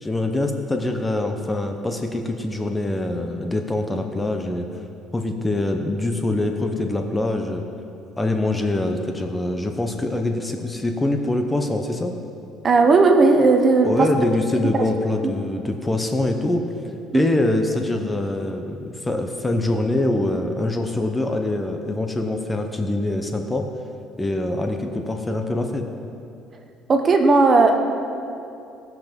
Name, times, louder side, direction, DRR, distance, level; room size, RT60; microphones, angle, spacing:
voice 1, 0.0-4.6 5.1-7.6 8.2-12.1 13.8-16.6 17.1-23.6 24.2-25.9, left 2 dB, 10° left, 4 dB, 0.8 m, -24 dB
voice 2, 12.6-14.1 14.6-14.7 17.1-17.3 26.9-27.8, right 3 dB, 30° right, 5 dB, 1.0 m, -16 dB
17.5 x 6.0 x 5.2 m, 2.6 s
cardioid pair, 120°, 0 cm